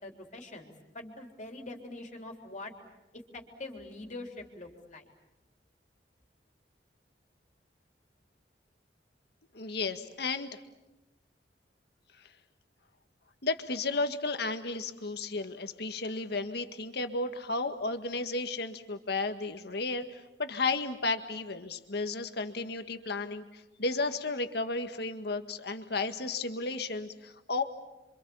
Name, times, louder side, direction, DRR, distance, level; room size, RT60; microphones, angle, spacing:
voice 1, 0.0-2.7 3.3-5.1, left 2 dB, 45° left, 2 dB, 3.6 m, -44 dB
voice 2, 9.5-10.5 13.4-27.6, left 3 dB, 65° left, 7 dB, 1.8 m, -33 dB
28.5 x 25.5 x 7.1 m, 1.0 s
head